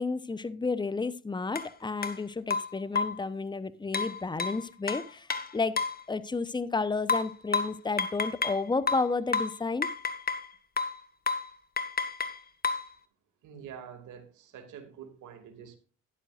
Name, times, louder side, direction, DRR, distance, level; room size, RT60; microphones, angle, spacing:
voice 1, 0.0-5.8 6.1-9.9, left 4 dB, 15° left, 0.8 m, -31 dB
sound 1, 1.6-1.7 2.0-2.2 2.5-3.3 3.9-6.0 7.1-8.6 8.9-10.5 10.8-11.0 11.3-11.5 11.8-12.9, left 4 dB, 30° left, 1.6 m, -31 dB
voice 2, 13.4-15.8, right 8 dB, 80° right, 2.5 m, -46 dB
12.5 x 10.5 x 2.5 m
cardioid pair, 90°, 30 cm